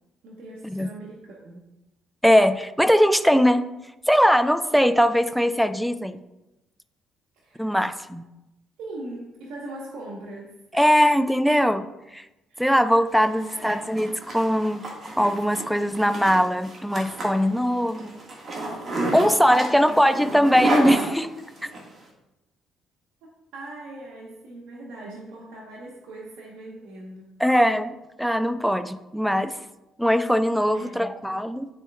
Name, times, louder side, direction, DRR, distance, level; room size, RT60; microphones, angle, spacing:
voice 1, 0.2-1.7 7.3-7.8 8.8-11.0 12.5-12.8 13.3-13.8 19.1-20.2 21.6-21.8 23.2-27.3 30.5-31.1, right 2 dB, 75° right, -3 dB, 1.1 m, -41 dB
voice 2, 2.2-3.7 4.1-6.2 7.6-8.2 10.7-11.9 12.1-12.2 12.6-14.8 15.2-18.2 19.1-21.3 27.4-29.5 30.0-31.7, equal, ahead, 12 dB, 0.4 m, -21 dB
Zipper (clothing), 13.1-21.8, right 2 dB, 40° right, 1.6 m, -31 dB
10.0 x 4.2 x 2.3 m, 0.97 s
supercardioid pair, 80°, 0 cm